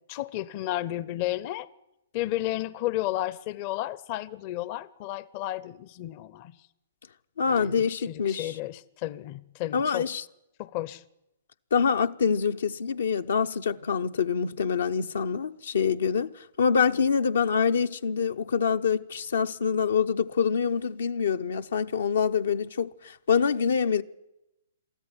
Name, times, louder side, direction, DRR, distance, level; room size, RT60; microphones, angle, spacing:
voice 1, 0.1-1.7 2.1-6.6 7.5-10.1 10.6-11.0, left 15 dB, 40° left, 0.7 m, -32 dB
voice 2, 7.4-8.6 9.7-10.2 11.7-16.3 16.6-24.0, left 6 dB, 75° left, 0.8 m, -25 dB
23.0 x 14.0 x 9.9 m
hypercardioid pair, 125°, 0 cm